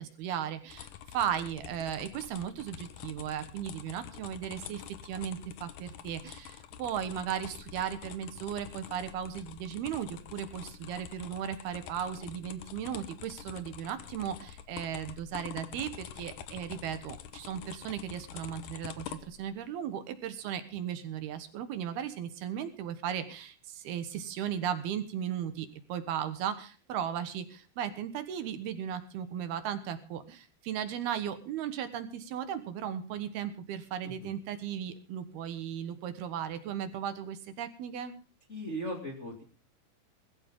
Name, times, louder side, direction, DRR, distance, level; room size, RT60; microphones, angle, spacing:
voice 1, 0.0-38.1, right 9 dB, 70° right, 10 dB, 3.0 m, -36 dB
sound 1, 0.7-19.5, left 9 dB, 70° left, 2.0 m, -47 dB
voice 2, 38.5-39.4, equal, 25° left, 2 dB, 1.8 m, -38 dB
20.5 x 14.5 x 3.7 m, 0.36 s
omnidirectional pair, 4.9 m